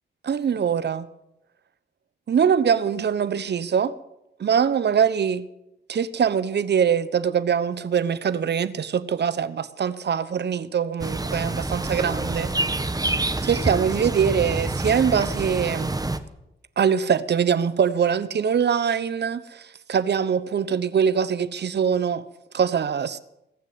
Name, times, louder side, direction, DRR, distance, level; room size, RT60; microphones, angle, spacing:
voice 1, 0.2-1.1 2.3-3.9 4.4-5.5 5.9-12.5 13.4-15.9 16.8-22.2 22.5-23.2, right 7 dB, 65° right, 0.9 m, -23 dB
sound 1, 11.0-16.2, right 2 dB, 20° right, 1.4 m, -27 dB
20.0 x 6.8 x 9.5 m
cardioid pair, 60°, 19 cm